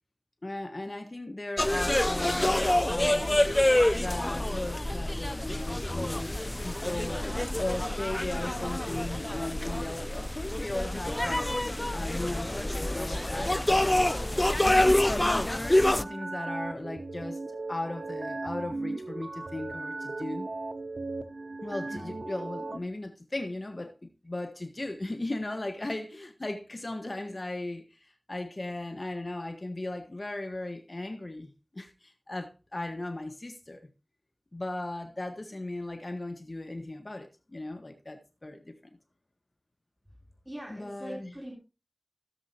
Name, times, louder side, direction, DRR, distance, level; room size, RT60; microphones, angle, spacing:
voice 1, 0.4-3.3 3.9-7.3 7.6-11.5 11.9-14.0 14.6-20.5 21.6-33.9 34.5-38.7 40.7-41.3, left 2 dB, 45° left, 1.4 m, -37 dB
sound 1, 1.6-16.0, left 1 dB, 25° left, 0.5 m, -27 dB
sound 2, 15.4-22.8, right 3 dB, 65° right, 0.8 m, -37 dB
voice 2, 40.4-41.5, equal, 15° right, 3.5 m, -42 dB
16.5 x 7.3 x 2.9 m
wide cardioid pair, 40°, 0 cm